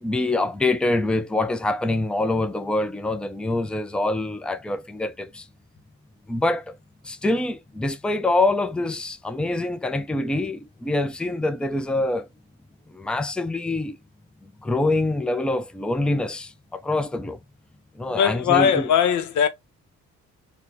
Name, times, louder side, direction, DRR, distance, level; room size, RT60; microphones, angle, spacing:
voice 1, 0.0-5.4 6.3-6.7 7.1-12.3 12.9-14.0 14.6-17.4 18.0-18.9, left 2 dB, 5° left, 0.4 m, -25 dB
voice 2, 18.1-19.5, left 8 dB, 70° left, 0.8 m, -20 dB
2.7 x 2.2 x 3.9 m
cardioid pair, 90°, 30 cm